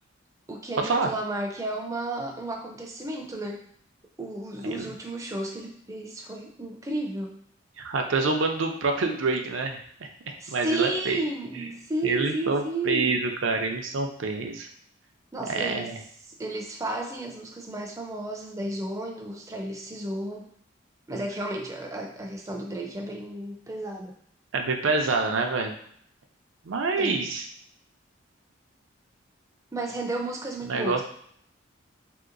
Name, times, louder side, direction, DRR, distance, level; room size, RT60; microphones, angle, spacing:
voice 1, 0.5-3.7 4.2-7.4 10.4-13.2 15.3-15.9 16.4-20.5 21.1-24.1 26.9-27.2 29.7-31.0, right 2 dB, 15° right, 1 dB, 0.4 m, -33 dB
voice 2, 7.8-11.2 12.0-14.7 15.5-16.0 24.5-25.7 26.7-27.5 30.7-31.0, right 3 dB, 80° right, 3 dB, 0.5 m, -27 dB
3.3 x 2.8 x 2.5 m, 0.65 s
head